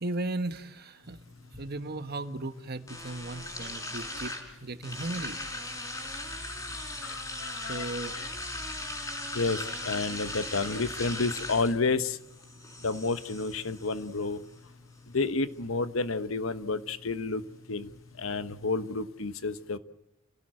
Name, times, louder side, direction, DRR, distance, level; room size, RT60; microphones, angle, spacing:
voice 1, 0.0-1.2 1.6-4.3 4.6-5.4 7.7-8.1, right 2 dB, 50° right, 10 dB, 1.3 m, -36 dB
sound 1, 1.0-19.0, left 1 dB, 15° left, 4.7 m, -40 dB
voice 2, 7.0-8.3 9.3-12.2 12.8-14.4 15.1-17.4 17.7-17.9 18.2-19.8, left 3 dB, 80° left, 12 dB, 1.2 m, -30 dB
29.0 x 17.0 x 7.8 m, 1.0 s
head